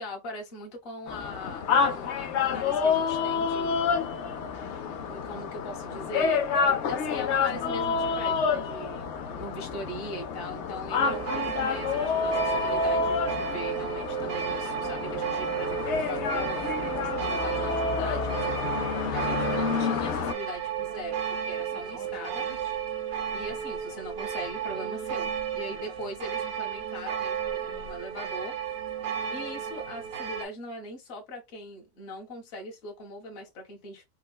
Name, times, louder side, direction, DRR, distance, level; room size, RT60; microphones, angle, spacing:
voice 1, 0.0-3.9 5.0-18.3 19.1-22.5 23.3-28.6 29.3-34.0, left 1 dB, 40° left, 1.3 m, -40 dB
sound 1, 1.1-20.3, left 5 dB, 70° left, 0.7 m, -28 dB
sound 2, 10.9-30.5, right 8 dB, 65° right, 1.0 m, -33 dB
4.4 x 2.1 x 2.2 m
omnidirectional pair, 1.7 m